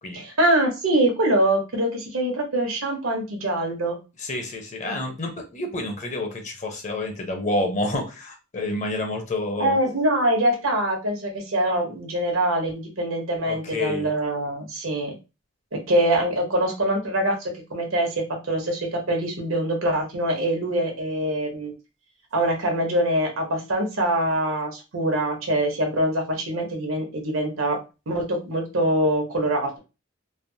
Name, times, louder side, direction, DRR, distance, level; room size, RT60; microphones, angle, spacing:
voice 1, 0.1-4.0 9.6-15.1 15.7-21.7 22.3-27.8 28.1-29.8, right 1 dB, 85° right, 2 dB, 1.0 m, -24 dB
voice 2, 4.2-9.8 13.4-14.1, left 1 dB, 35° left, 3 dB, 0.7 m, -29 dB
3.2 x 2.0 x 2.7 m, 0.28 s
head